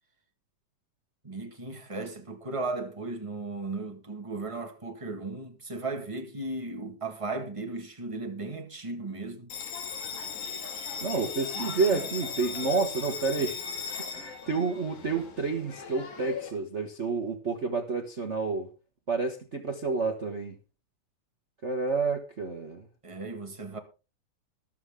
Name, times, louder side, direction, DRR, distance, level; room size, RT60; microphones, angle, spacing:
voice 1, 1.2-9.5 11.5-12.0 23.0-23.8, right 3 dB, 15° right, 1.1 m, -36 dB
Bell, 9.5-16.5, left 6 dB, 80° left, 3.7 m, -38 dB
voice 2, 11.0-13.6 14.1-18.7 19.1-20.5 21.6-22.8, right 4 dB, 85° right, 0.6 m, -29 dB
14.0 x 12.0 x 3.6 m
omnidirectional pair, 3.4 m